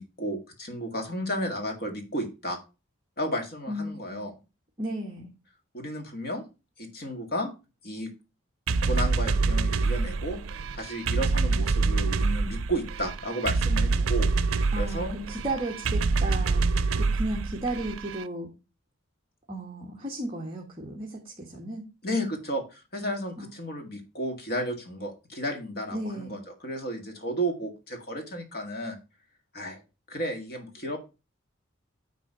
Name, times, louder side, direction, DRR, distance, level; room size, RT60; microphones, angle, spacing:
voice 1, 0.0-2.6 3.2-4.3 5.7-6.4 6.8-7.5 7.8-8.1 8.8-10.4 10.7-15.2 22.0-29.0 29.5-29.8 30.1-31.0, equal, 50° left, 4 dB, 2.0 m, -33 dB
voice 2, 3.7-4.3 4.8-5.3 14.7-16.6 17.0-18.5 19.5-21.8 23.4-23.5 25.9-26.4, right 1 dB, 25° right, -2 dB, 1.5 m, -34 dB
sound 1, 8.7-18.2, right 3 dB, 90° right, 0.5 m, -26 dB
9.8 x 3.7 x 5.5 m, 0.29 s
head